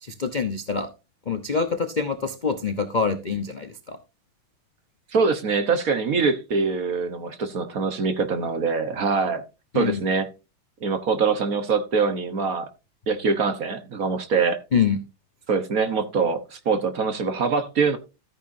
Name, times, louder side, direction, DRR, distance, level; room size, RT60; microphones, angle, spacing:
voice 1, 0.0-0.9 1.3-4.0 9.7-10.0 14.7-15.0, left 5 dB, 70° left, 0.4 m, -25 dB
voice 2, 5.1-9.4 9.7-10.3 10.8-12.7 13.1-14.6 15.5-18.0, right 5 dB, 50° right, 1.3 m, -24 dB
14.0 x 8.8 x 2.7 m
omnidirectional pair, 2.4 m